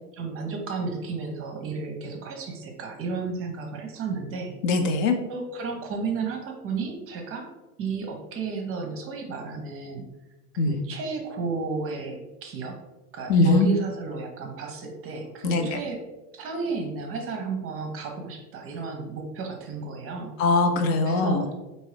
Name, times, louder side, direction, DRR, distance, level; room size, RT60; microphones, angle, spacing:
voice 1, 0.1-4.6 5.3-7.5 7.8-10.0 10.5-12.8 13.1-16.0 16.3-20.3 21.0-21.6, right 4 dB, 30° right, 3 dB, 0.6 m, -33 dB
voice 2, 4.6-5.2 10.6-10.8 13.3-13.7 15.4-15.8 20.4-21.4, left 3 dB, 55° left, 5 dB, 0.7 m, -21 dB
3.7 x 2.7 x 3.1 m, 1.1 s
hypercardioid pair, 90°, 46 cm